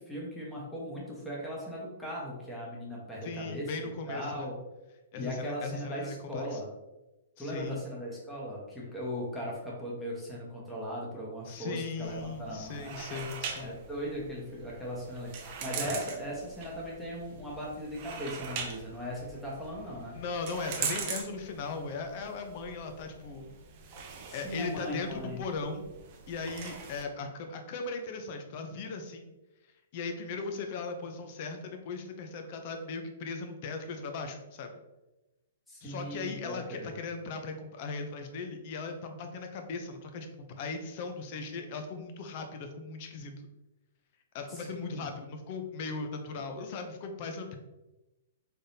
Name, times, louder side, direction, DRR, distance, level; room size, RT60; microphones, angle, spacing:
voice 1, 0.0-4.5 5.2-6.7 7.4-13.2 13.6-20.2 24.3-25.4 35.7-36.9 44.5-44.7 44.9-45.0 46.3-46.7, equal, 5° left, -5 dB, 1.1 m, -38 dB
voice 2, 3.2-4.5 5.1-6.6 7.4-7.8 11.5-13.7 15.8-15.9 20.1-23.5 24.3-25.8 26.3-29.3 29.9-34.7 35.8-43.3 44.3-47.6, left 4 dB, 45° left, 5 dB, 0.6 m, -38 dB
sound 1, 12.0-27.0, right 6 dB, 40° right, 0.7 m, -42 dB
3.9 x 3.4 x 2.7 m, 1.0 s
hypercardioid pair, 140°, 0 cm